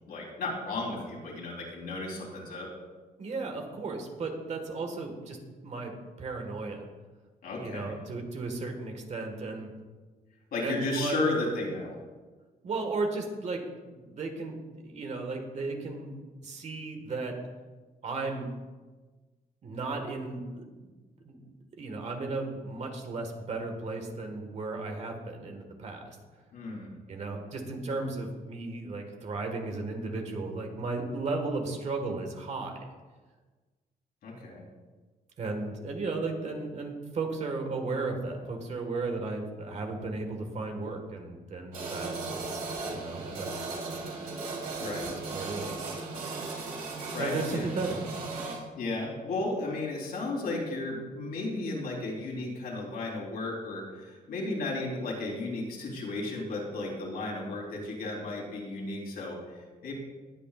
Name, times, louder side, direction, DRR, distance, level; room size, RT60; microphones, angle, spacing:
voice 1, 0.1-2.7 7.4-7.9 10.5-12.0 26.5-26.9 34.2-34.6 44.8-45.1 47.1-47.7 48.8-59.9, left 2 dB, 70° left, -2 dB, 3.7 m, -34 dB
voice 2, 3.2-5.4 5.6-6.9 7.5-9.7 10.6-11.2 12.6-16.1 16.4-17.4 18.0-18.5 19.6-20.9 21.2-26.2 27.1-32.9 35.4-43.5 45.0-45.9 47.2-48.2, right 3 dB, 45° right, 3 dB, 1.7 m, -35 dB
sound 1, 41.7-48.6, right 3 dB, 70° right, 3.5 m, -36 dB
20.0 x 8.8 x 2.5 m, 1.3 s
cardioid pair, 160°, 16 cm